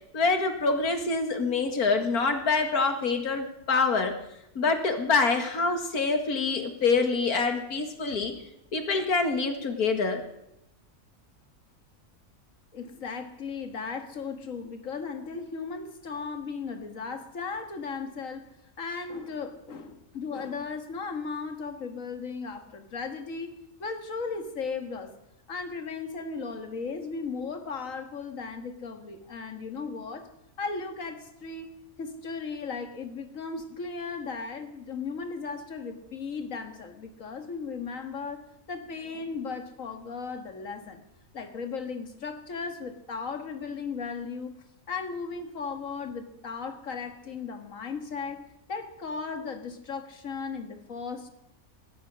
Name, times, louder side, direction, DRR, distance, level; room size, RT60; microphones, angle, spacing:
voice 1, 0.1-4.1 4.6-8.3 8.7-10.2, left 4 dB, 85° left, 6 dB, 2.4 m, -26 dB
voice 2, 12.7-18.5 18.8-25.1 25.5-30.3 30.6-41.0 41.3-44.5 44.9-51.3, left 5 dB, 60° left, 7 dB, 2.0 m, -36 dB
17.5 x 12.5 x 6.3 m, 0.84 s
omnidirectional pair, 1.5 m